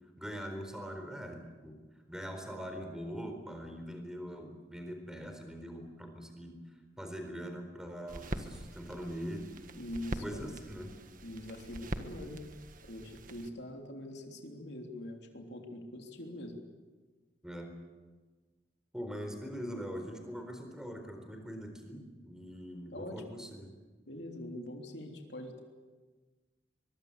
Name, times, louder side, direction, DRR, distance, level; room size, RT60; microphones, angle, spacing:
voice 1, 0.2-1.8 2.1-6.6 7.0-9.5 10.2-10.9 17.4-17.7 18.9-23.7, equal, 5° right, 5 dB, 4.3 m, -42 dB
sound 1, 8.1-13.5, right 1 dB, 50° right, 1.6 m, -43 dB
voice 2, 9.8-10.4 11.2-16.6 22.9-23.2 24.1-25.6, left 1 dB, 75° left, 2 dB, 3.4 m, -43 dB
23.5 x 23.0 x 8.2 m, 1.4 s
head